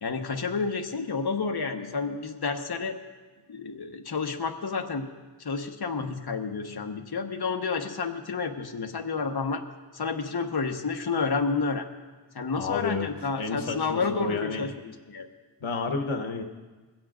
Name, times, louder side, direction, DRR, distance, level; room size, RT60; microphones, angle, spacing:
voice 1, 0.0-3.0 3.5-5.1 5.4-9.6 9.9-11.8 12.3-15.3, left 4 dB, 55° left, 3 dB, 1.2 m, -30 dB
voice 2, 12.6-13.1 13.4-14.7 15.6-16.4, left 4 dB, 85° left, 3 dB, 1.1 m, -30 dB
22.0 x 16.5 x 2.5 m, 1.3 s
wide cardioid pair, 55°, 46 cm